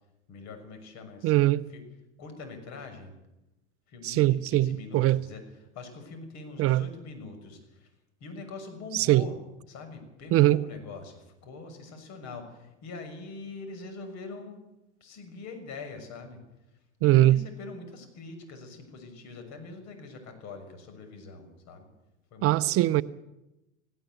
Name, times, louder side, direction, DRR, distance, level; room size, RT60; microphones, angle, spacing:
voice 1, 0.3-1.8 2.2-3.1 3.9-7.9 8.2-9.4 9.7-14.6 15.0-16.4 17.0-21.9 22.3-23.0, left 3 dB, 50° left, 6.6 m, -43 dB
voice 2, 1.2-1.6 4.0-5.2 6.6-6.8 8.9-9.2 10.3-10.6 17.0-17.4 22.4-23.0, right 16 dB, 40° right, 0.6 m, -21 dB
18.0 x 17.5 x 9.3 m
hypercardioid pair, 100°, 35 cm